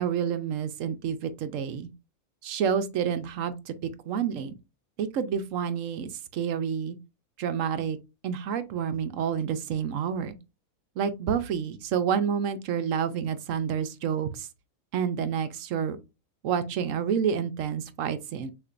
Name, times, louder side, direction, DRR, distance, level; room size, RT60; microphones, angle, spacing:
voice 1, 0.0-1.9 2.4-4.5 5.0-7.0 7.4-8.0 8.2-10.4 11.0-14.5 14.9-16.0 16.4-18.5, right 7 dB, 70° right, 1.0 m, -29 dB
6.6 x 2.9 x 2.5 m
omnidirectional pair, 1.5 m